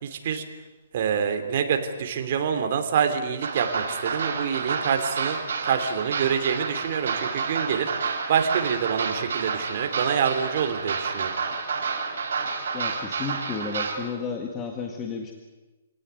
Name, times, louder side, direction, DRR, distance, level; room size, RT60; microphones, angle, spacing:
voice 1, 0.0-0.4 0.9-5.4 5.6-7.9 8.3-11.3, right 7 dB, 45° right, 6 dB, 3.0 m, -26 dB
sound 1, 3.4-14.0, right 5 dB, 65° right, 6.3 m, -30 dB
voice 2, 12.7-15.3, left 5 dB, 15° left, 2 dB, 1.9 m, -32 dB
27.5 x 17.5 x 9.6 m, 1.2 s
hypercardioid pair, 170°, 0 cm